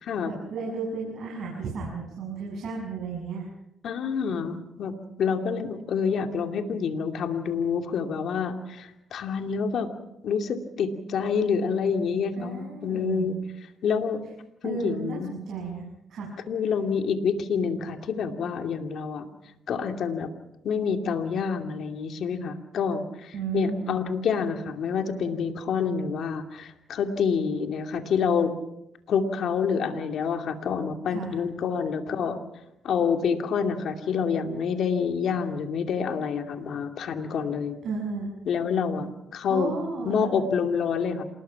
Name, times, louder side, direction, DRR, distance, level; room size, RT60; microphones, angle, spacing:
voice 1, 0.3-3.5 12.4-13.3 14.6-16.3 23.3-24.0 31.1-31.4 37.8-38.3 39.5-40.3, right 4 dB, 60° right, -2 dB, 7.1 m, -34 dB
voice 2, 3.8-4.9 5.2-9.9 10.2-13.3 13.8-14.2 14.6-15.3 16.5-19.3 19.7-20.3 20.6-28.5 29.1-32.4 32.8-37.8 38.5-39.7 40.0-41.2, left 6 dB, 65° left, 5 dB, 2.5 m, -27 dB
27.5 x 20.0 x 5.9 m, 0.85 s
cardioid pair, 90°, 0 cm